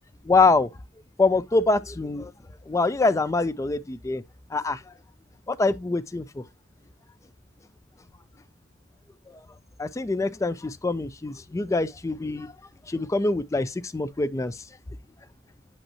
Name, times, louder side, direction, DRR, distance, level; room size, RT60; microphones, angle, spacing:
voice 1, 0.2-0.7 1.2-2.3 2.7-4.2 4.5-4.9 5.5-6.4 9.3-9.4 9.8-12.5 12.9-14.6, left 3 dB, 15° left, 0.3 m, -24 dB
8.5 x 5.3 x 2.8 m
head